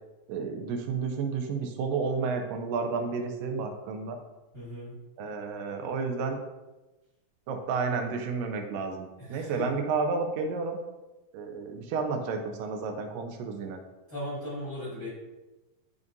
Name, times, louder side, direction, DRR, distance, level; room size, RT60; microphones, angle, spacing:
voice 1, 0.3-4.2 5.2-6.4 7.5-10.8 11.3-13.8, right 4 dB, 85° right, 4 dB, 2.2 m, -31 dB
voice 2, 4.5-4.9 9.2-9.7 14.1-15.1, equal, 35° left, -9 dB, 1.6 m, -37 dB
10.5 x 3.6 x 2.6 m, 1.1 s
omnidirectional pair, 4.0 m